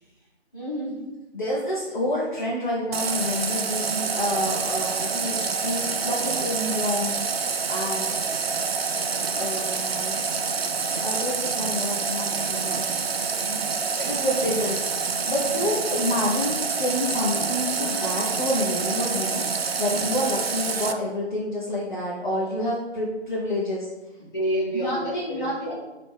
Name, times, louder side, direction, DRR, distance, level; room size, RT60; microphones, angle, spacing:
voice 1, 0.5-1.0 13.4-13.8 15.4-15.6 19.9-20.1 24.2-25.7, right 1 dB, 20° left, -10 dB, 1.3 m, -30 dB
voice 2, 1.3-7.1 7.7-8.2 9.3-10.2 11.0-13.4 13.9-14.9 15.3-23.9 24.7-25.7, left 1 dB, 45° left, -5 dB, 0.8 m, -28 dB
Water tap faucet, 2.9-20.9, right 5 dB, 65° right, 0.4 m, -27 dB
4.8 x 2.9 x 3.4 m, 1.1 s
figure-of-eight pair, 155°, 33 cm